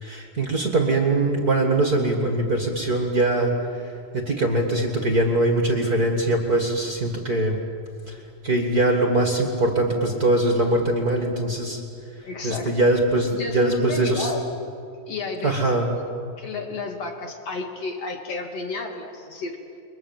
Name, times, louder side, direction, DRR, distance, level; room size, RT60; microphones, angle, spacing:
voice 1, 0.0-7.6 8.1-11.8 12.2-14.3 15.4-15.9, right 2 dB, 35° right, 2 dB, 2.1 m, -22 dB
voice 2, 12.2-12.8 13.3-14.5 15.1-16.1 16.4-19.6, left 3 dB, 55° left, 3 dB, 3.1 m, -32 dB
29.5 x 23.0 x 7.4 m, 2.5 s
omnidirectional pair, 3.6 m